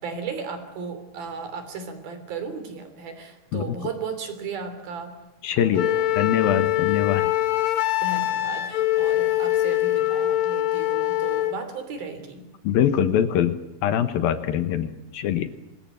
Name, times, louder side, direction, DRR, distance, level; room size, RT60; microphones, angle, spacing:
voice 1, 0.0-5.2 5.6-6.1 8.0-12.5, right 5 dB, 65° right, 8 dB, 4.9 m, -35 dB
voice 2, 5.4-7.3 12.6-15.5, left 9 dB, 70° left, 11 dB, 2.7 m, -23 dB
Wind instrument woodwind instrument, 5.8-11.6, left 14 dB, 90° left, 1.5 m, -23 dB
25.5 x 20.5 x 7.7 m, 0.92 s
omnidirectional pair, 4.7 m